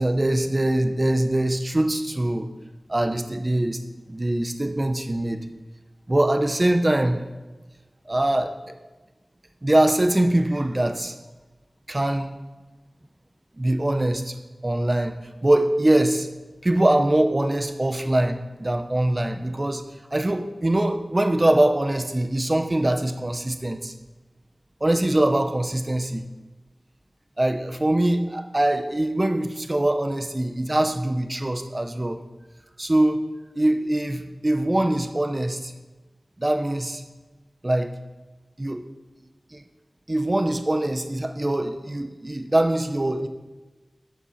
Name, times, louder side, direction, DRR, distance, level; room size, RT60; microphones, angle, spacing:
voice 1, 0.0-2.5 2.9-3.8 4.1-5.4 6.1-7.2 8.1-8.8 9.6-11.2 11.9-12.3 13.6-14.4 14.6-15.1 15.4-16.3 16.6-19.8 20.1-23.9 24.8-26.3 27.4-32.2 32.8-33.2 33.5-35.7 36.4-37.0 37.6-37.9 38.6-38.8 39.5-39.6 40.1-43.3, right 1 dB, 30° right, 7 dB, 0.8 m, -23 dB
11.5 x 7.2 x 4.2 m, 1.2 s
wide cardioid pair, 60°, 0 cm